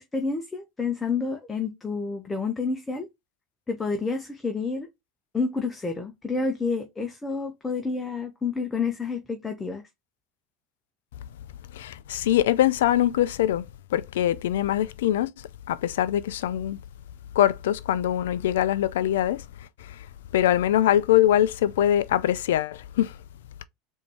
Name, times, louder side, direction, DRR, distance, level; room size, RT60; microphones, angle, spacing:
voice 1, 0.0-3.1 3.7-4.9 5.3-9.8, left 4 dB, 15° left, 0.8 m, -29 dB
voice 2, 11.7-13.6 13.9-15.3 15.7-16.8 17.4-19.4 19.9-20.0 20.3-23.1, left 12 dB, 80° left, 0.4 m, -23 dB
4.1 x 2.7 x 4.7 m
hypercardioid pair, 90°, 0 cm